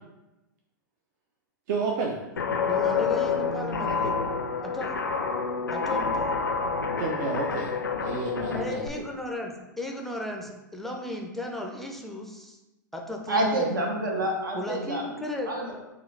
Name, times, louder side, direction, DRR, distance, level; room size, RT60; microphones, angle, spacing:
voice 1, 1.7-2.2 7.0-7.7 8.0-9.0, right 4 dB, 60° right, 0 dB, 0.5 m, -30 dB
Guitar, 2.4-8.9, left 5 dB, 85° left, 0.4 m, -28 dB
voice 2, 2.7-4.2 4.6-4.9 5.7-6.3 8.5-12.6 12.9-13.7 14.5-15.5, left 1 dB, ahead, 0 dB, 0.4 m, -35 dB
voice 3, 13.3-15.1 15.5-15.7, right 1 dB, 85° right, -1 dB, 0.9 m, -27 dB
3.7 x 2.4 x 3.2 m, 0.99 s
hypercardioid pair, 105°, 11 cm